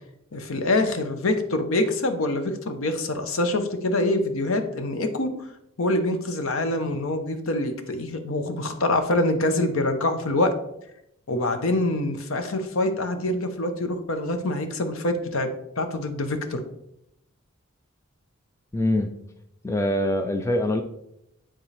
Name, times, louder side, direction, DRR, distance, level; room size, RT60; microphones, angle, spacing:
voice 1, 0.3-5.3 5.8-10.5 11.3-15.5 15.8-16.6, left 2 dB, 70° left, 7 dB, 0.8 m, -25 dB
voice 2, 18.7-19.1 19.6-20.8, left 1 dB, 15° left, 6 dB, 0.3 m, -24 dB
9.8 x 3.7 x 3.3 m, 0.81 s
head